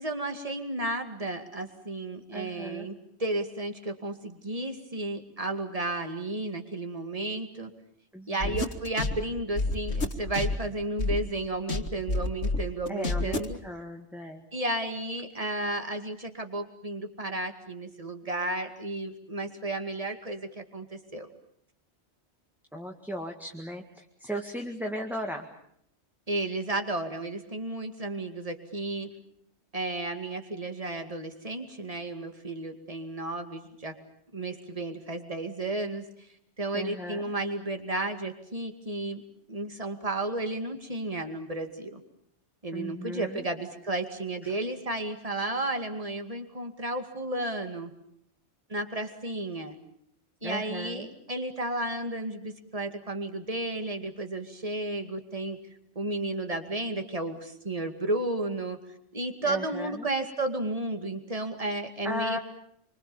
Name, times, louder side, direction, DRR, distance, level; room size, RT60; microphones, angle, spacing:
voice 1, 0.0-2.9 3.2-7.7 8.3-13.6 14.5-21.3 26.3-29.1 29.7-34.0 34.3-36.0 36.6-39.2 39.5-42.0 42.6-47.9 48.7-49.8 50.4-55.6 56.0-58.8 59.1-62.4, right 2 dB, 30° right, 6 dB, 2.4 m, -33 dB
voice 2, 2.3-2.9 8.1-8.7 12.9-14.4 22.7-25.5 36.7-37.2 42.7-43.4 50.4-51.1 59.5-60.1 62.0-62.4, equal, ahead, 2 dB, 1.9 m, -36 dB
sound 1, 8.4-11.3 11.7-13.6, left 3 dB, 70° left, 2.0 m, -29 dB
26.5 x 25.0 x 7.2 m, 0.72 s
omnidirectional pair, 1.2 m